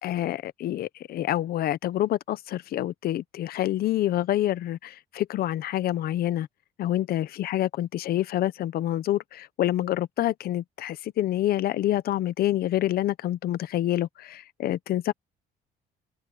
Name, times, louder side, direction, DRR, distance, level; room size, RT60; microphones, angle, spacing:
voice 1, 0.0-6.5 6.8-15.1, left 13 dB, 65° left, 0.9 m, -27 dB
cardioid pair, 110°, 17 cm